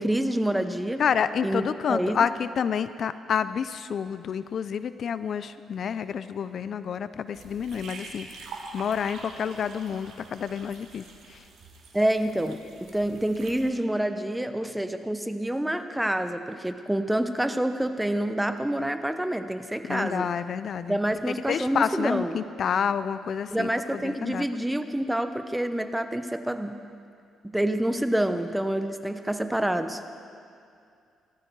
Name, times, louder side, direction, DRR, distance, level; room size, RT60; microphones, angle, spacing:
voice 1, 0.0-1.1 1.4-2.2 11.9-20.3 20.9-22.4 23.5-26.8 27.4-30.0, right 1 dB, 5° right, 9 dB, 0.8 m, -27 dB
voice 2, 1.0-8.3 8.7-11.4 19.8-21.0 21.5-24.5, left 7 dB, 55° left, 14 dB, 0.4 m, -29 dB
sound 1, 7.3-13.7, right 3 dB, 75° right, 2.2 m, -45 dB
18.5 x 14.0 x 4.7 m, 2.4 s
cardioid pair, 90°, 0 cm